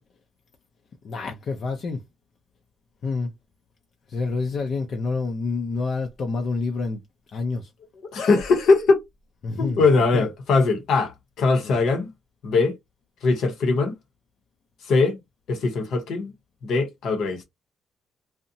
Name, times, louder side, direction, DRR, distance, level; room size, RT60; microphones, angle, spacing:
voice 1, 1.0-2.0 3.0-3.3 4.1-7.0 7.3-7.7 9.4-9.8 10.1-10.3 11.6-11.7, left 4 dB, 55° left, 0.4 m, -28 dB
voice 2, 8.1-9.0 9.6-12.1 12.4-12.7 13.2-13.9 14.8-15.2 15.5-16.3 16.6-17.4, left 3 dB, 75° left, 0.8 m, -21 dB
2.7 x 2.0 x 2.6 m
cardioid pair, 90°, 0 cm